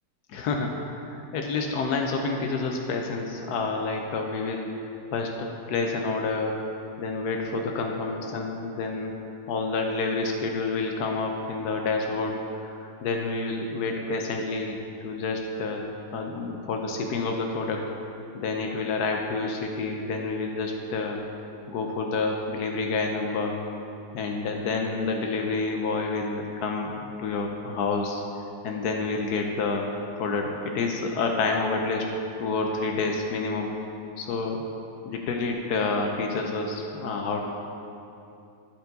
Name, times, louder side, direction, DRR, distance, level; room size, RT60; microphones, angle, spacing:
voice 1, 0.3-6.6 7.0-9.2 9.5-14.8 15.0-15.9 16.1-17.8 18.3-21.2 21.7-23.6 24.1-28.2 28.6-29.9 30.1-32.1 32.4-33.7 34.2-34.6 35.0-37.5, left 3 dB, 80° left, 2 dB, 0.8 m, -28 dB
11.0 x 4.5 x 3.9 m, 2.7 s
omnidirectional pair, 2.3 m